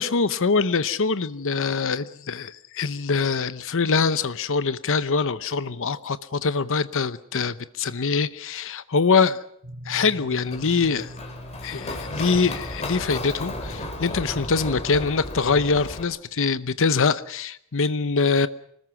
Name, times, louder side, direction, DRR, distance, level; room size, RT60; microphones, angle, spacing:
voice 1, 0.0-9.4 9.9-11.1 11.6-18.5, left 4 dB, 65° left, 14 dB, 0.8 m, -24 dB
sound 1, 9.6-14.7, equal, 45° right, 2.4 m, -43 dB
Run, 10.4-16.0, left 2 dB, 30° left, 3.7 m, -34 dB
25.5 x 20.0 x 6.1 m, 0.70 s
head